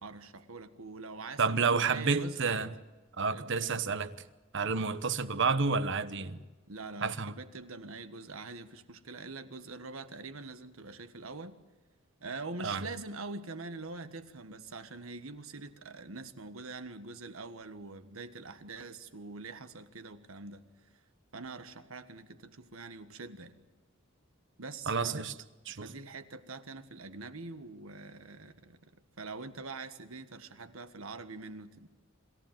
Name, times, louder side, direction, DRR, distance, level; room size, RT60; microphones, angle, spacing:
voice 1, 0.0-2.7 3.3-3.6 4.6-5.0 6.7-11.6 12.2-20.6 21.3-23.6 24.6-25.2 25.7-31.9, right 3 dB, 80° right, 1.5 m, -44 dB
voice 2, 1.4-2.7 3.2-4.1 4.5-6.4 7.0-7.4 12.6-12.8 24.9-25.3 25.7-25.9, right 4 dB, 60° right, 1.1 m, -30 dB
26.0 x 14.5 x 9.0 m
head